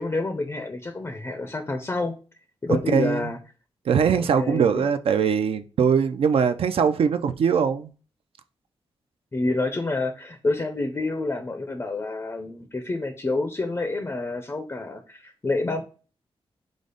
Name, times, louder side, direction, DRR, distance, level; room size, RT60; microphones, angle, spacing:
voice 1, 0.0-2.1 2.6-3.4 4.2-4.9 9.3-15.8, left 2 dB, 25° left, 0.4 m, -28 dB
voice 2, 2.9-3.3 3.9-7.9, right 6 dB, 65° right, 0.4 m, -21 dB
5.0 x 2.0 x 3.8 m
wide cardioid pair, 140°, 10 cm